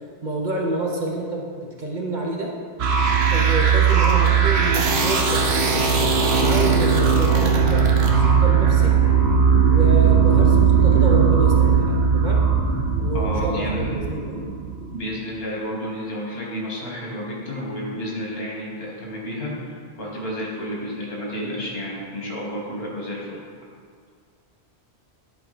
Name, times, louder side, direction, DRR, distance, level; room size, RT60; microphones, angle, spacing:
voice 1, 0.2-2.5 3.3-5.9 6.3-9.0 9.7-12.4 13.0-14.4, right 2 dB, 45° right, -1 dB, 0.9 m, -28 dB
sound 1, 2.8-15.1, right 6 dB, 75° right, 1.0 m, -18 dB
voice 2, 13.1-14.0 14.9-23.4, equal, 65° left, -4 dB, 1.9 m, -31 dB
10.5 x 4.1 x 4.2 m, 2.1 s
omnidirectional pair, 1.1 m